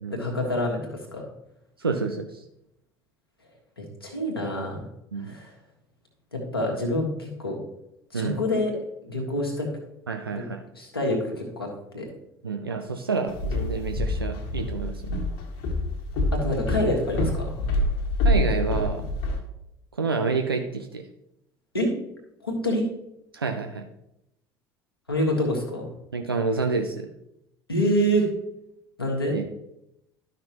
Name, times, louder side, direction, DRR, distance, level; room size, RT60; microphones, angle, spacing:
voice 1, 0.1-1.2 3.8-4.8 5.2-5.5 6.3-7.6 8.1-8.7 9.1-9.7 10.3-10.4 10.7-11.7 11.9-12.1 16.3-17.8 21.7-21.9 22.4-22.8 25.1-25.9 27.7-28.3 29.0-29.5, equal, 90° left, -2 dB, 1.7 m, -26 dB
voice 2, 1.8-2.4 5.1-5.4 8.1-8.4 10.1-10.6 12.4-15.2 18.2-19.1 20.0-21.1 23.3-23.8 26.1-27.1 29.3-29.4, right 4 dB, 85° right, 5 dB, 0.5 m, -28 dB
Walk footsteps, 13.3-19.4, left 1 dB, 60° left, 1.6 m, -26 dB
12.0 x 5.8 x 3.0 m, 0.82 s
figure-of-eight pair, 65°, 12 cm